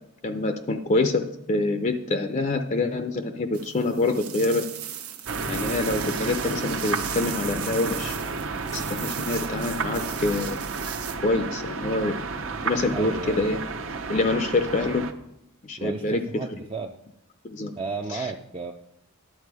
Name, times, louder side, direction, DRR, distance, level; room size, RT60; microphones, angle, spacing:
voice 1, 0.2-1.2 1.5-4.7 5.5-10.6 11.2-12.1 12.6-13.6 14.1-15.1 15.6-16.2 17.4-17.7 18.1-18.3, left 2 dB, 35° left, 7 dB, 0.5 m, -26 dB
sound 1, 3.5-11.2, right 10 dB, 85° right, 1.1 m, -37 dB
sound 2, 5.3-15.1, right 4 dB, 60° right, 0.8 m, -32 dB
voice 2, 12.9-13.5 15.8-17.0 17.8-18.7, right 3 dB, 25° right, 2 dB, 0.4 m, -33 dB
11.0 x 7.3 x 4.8 m, 0.83 s
head